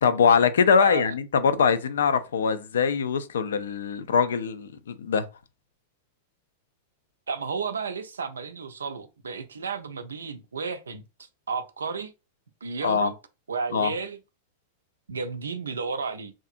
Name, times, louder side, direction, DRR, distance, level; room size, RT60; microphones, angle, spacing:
voice 1, 0.0-5.3 12.8-13.1 13.7-13.9, left 6 dB, 75° left, 0.3 m, -22 dB
voice 2, 0.8-1.1 7.3-11.0 11.5-12.1 12.6-13.1 13.5-14.2 15.1-16.3, right 5 dB, 85° right, 0.4 m, -32 dB
2.7 x 2.4 x 2.5 m
hypercardioid pair, 100°, 0 cm